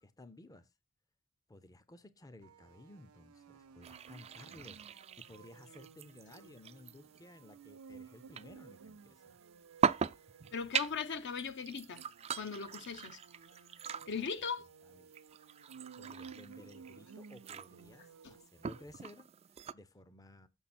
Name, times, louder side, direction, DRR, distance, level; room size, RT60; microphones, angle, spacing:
voice 1, 0.0-0.7 1.5-9.4 14.9-15.1 16.0-19.3 19.7-20.5, left 1 dB, 15° left, 0.5 m, -56 dB
sound 1, 2.4-19.0, right 5 dB, 90° right, 0.5 m, -56 dB
sound 2, 3.8-19.7, right 7 dB, 30° right, 0.3 m, -41 dB
voice 2, 10.5-12.0 12.3-14.7 18.2-18.3, left 5 dB, 55° left, 0.7 m, -40 dB
7.1 x 6.1 x 4.3 m
head